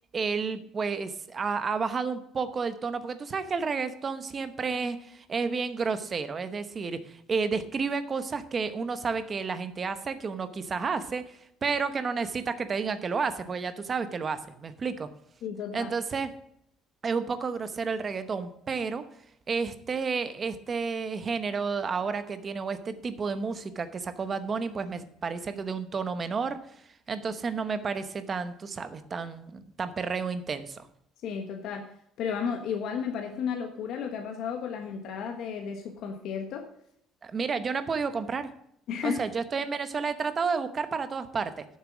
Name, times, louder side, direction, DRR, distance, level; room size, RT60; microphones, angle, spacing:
voice 1, 0.1-11.3 11.6-15.1 15.7-16.3 17.0-19.1 19.5-26.6 27.1-30.9 37.2-38.5 39.0-41.7, right 5 dB, 25° right, 11 dB, 0.9 m, -31 dB
voice 2, 15.4-15.9 31.2-31.9 32.2-36.7 38.9-39.2, left 6 dB, 55° left, 3 dB, 1.3 m, -33 dB
10.0 x 7.3 x 6.0 m, 0.72 s
cardioid pair, 170°, 0 cm